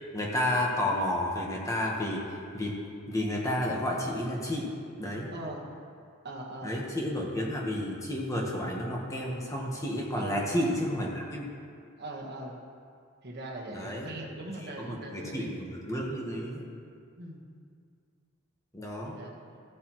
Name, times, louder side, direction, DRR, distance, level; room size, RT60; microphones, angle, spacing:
voice 1, 0.1-2.2 2.5-2.8 3.1-4.7 5.0-5.3 6.6-11.5 13.7-14.1 14.6-16.7 18.7-19.2, left 1 dB, 15° left, -2 dB, 1.2 m, -31 dB
voice 2, 5.3-5.7 6.2-6.8 10.1-10.5 12.0-12.6 13.2-15.5 17.2-17.4 19.0-19.4, right 1 dB, 50° right, -1 dB, 1.3 m, -40 dB
15.5 x 8.2 x 3.1 m, 2.3 s
head